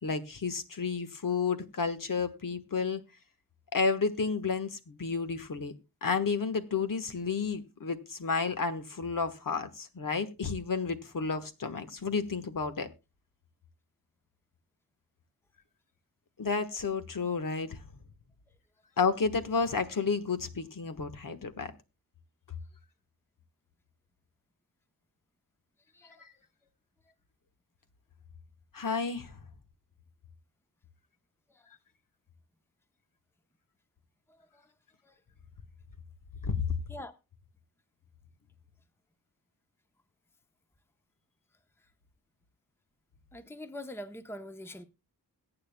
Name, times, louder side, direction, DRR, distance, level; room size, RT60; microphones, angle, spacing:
voice 1, 0.0-3.0 3.7-5.7 6.0-12.9 16.4-17.8 19.0-21.7 26.2-26.3 28.7-29.4 36.4-36.6, left 5 dB, 60° left, 1.3 m, -31 dB
voice 2, 25.9-26.3 31.5-31.7 34.3-34.7 35.0-35.2 36.9-37.2 41.8-41.9 43.3-44.8, left 1 dB, 5° left, 0.8 m, -44 dB
22.0 x 8.9 x 2.2 m
wide cardioid pair, 105°, 38 cm